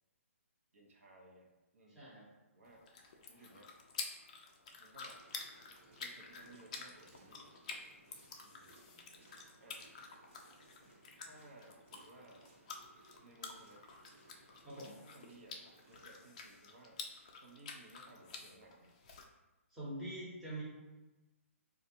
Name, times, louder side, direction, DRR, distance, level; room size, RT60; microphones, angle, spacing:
voice 1, 0.7-2.1 2.5-2.9 3.3-3.7 4.8-5.2 6.0-7.5 8.4-8.8 9.6-9.9 11.2-12.4 13.2-13.8 15.0-15.6 15.9-17.0 17.4-18.9, right 2 dB, 65° right, -1 dB, 0.8 m, -59 dB
voice 2, 1.9-2.3 8.9-9.2 14.6-14.9 19.7-20.6, right 1 dB, 5° right, -11 dB, 0.7 m, -45 dB
sound 1, 2.6-19.2, left 4 dB, 30° left, 0.3 m, -50 dB
sound 2, 5.1-16.1, right 2 dB, 50° right, 1.2 m, -64 dB
4.3 x 2.4 x 2.7 m, 1.1 s
hypercardioid pair, 170°, 8 cm